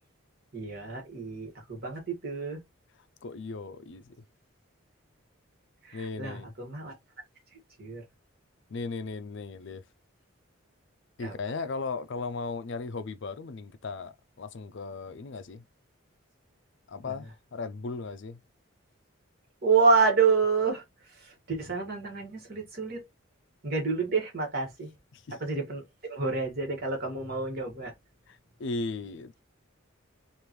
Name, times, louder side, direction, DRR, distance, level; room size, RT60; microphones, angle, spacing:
voice 1, 0.5-2.6 5.8-6.9 7.8-8.0 11.2-11.4 17.0-17.3 19.6-23.0 23.6-24.9 25.4-27.9, right 4 dB, 45° right, 1.8 m, -28 dB
voice 2, 3.2-4.1 5.9-6.5 8.7-9.8 11.2-15.6 16.9-18.4 25.1-25.4 28.3-29.4, left 4 dB, 60° left, 0.5 m, -37 dB
5.1 x 2.5 x 3.1 m
head